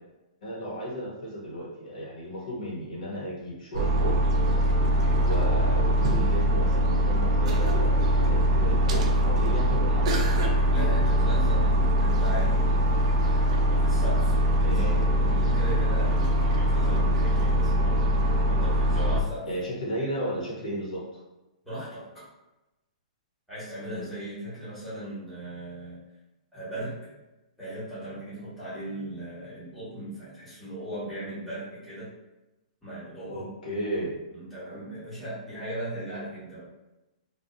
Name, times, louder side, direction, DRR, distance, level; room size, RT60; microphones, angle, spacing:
voice 1, 0.4-4.1 5.2-7.9 8.2-10.3 14.6-14.9 19.5-21.2 23.9-24.1 33.3-34.1, equal, 75° left, -5 dB, 1.0 m, -34 dB
sound 1, 3.7-19.2, equal, 55° right, 0.4 m, -22 dB
voice 2, 4.8-5.2 10.7-12.6 13.8-14.3 14.6-18.0 18.5-19.5 21.6-22.2 23.5-26.0 26.5-27.2 27.6-32.1 32.8-33.5 34.3-36.7, right 1 dB, ahead, -13 dB, 1.2 m, -37 dB
2.5 x 2.3 x 2.4 m, 1.0 s
hypercardioid pair, 155°, 4 cm